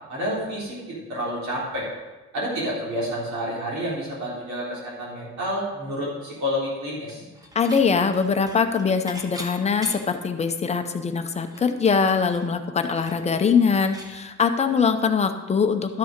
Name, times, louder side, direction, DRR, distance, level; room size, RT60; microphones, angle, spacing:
voice 1, 0.1-1.9 2.3-7.3, equal, 70° right, -6 dB, 3.5 m, -29 dB
Dishes pots and pans / Chink clink, 7.1-7.9 8.1-10.3 10.7-10.8 11.0-14.2, equal, 10° right, 1.0 m, -42 dB
voice 2, 7.6-16.0, left 5 dB, 20° left, 7 dB, 0.6 m, -22 dB
12.0 x 6.7 x 5.1 m, 1.2 s
cardioid pair, 170°, 29 cm